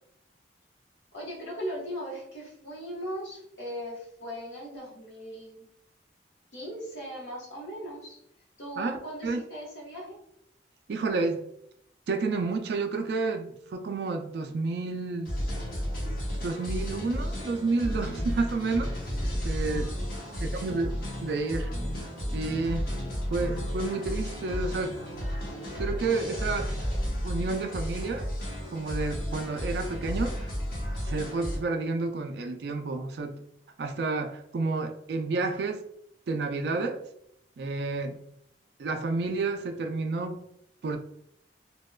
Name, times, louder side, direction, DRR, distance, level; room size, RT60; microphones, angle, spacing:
voice 1, 1.1-5.7 6.5-8.2 8.6-10.2 19.9-20.6, equal, 85° left, -4 dB, 1.2 m, -39 dB
voice 2, 10.9-11.5 12.1-15.4 16.4-19.0 19.4-19.9 20.4-21.7 22.3-22.9 23.3-25.0 25.8-26.7 27.2-28.3 28.7-30.5 31.0-33.4 33.8-35.8 36.3-37.0 37.6-38.2 38.8-40.4 40.8-41.0, right 3 dB, 60° right, 5 dB, 0.3 m, -30 dB
sound 1, 15.2-31.6, equal, 55° left, 1.0 m, -33 dB
2.8 x 2.2 x 2.2 m, 0.74 s
head